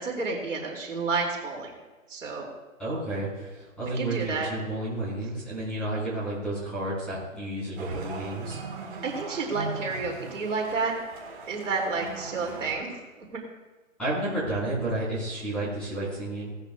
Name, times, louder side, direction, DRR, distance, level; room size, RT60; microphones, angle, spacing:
voice 1, 0.0-1.7 2.1-2.5 4.0-4.5 9.0-10.9 11.5-13.0, right 4 dB, 65° right, 0 dB, 2.8 m, -30 dB
voice 2, 2.8-8.6 14.0-16.5, right 1 dB, ahead, -11 dB, 4.6 m, -31 dB
sound 1, 7.8-12.7, right 4 dB, 35° right, 1.8 m, -39 dB
17.5 x 12.5 x 2.4 m, 1.2 s
hypercardioid pair, 170°, 41 cm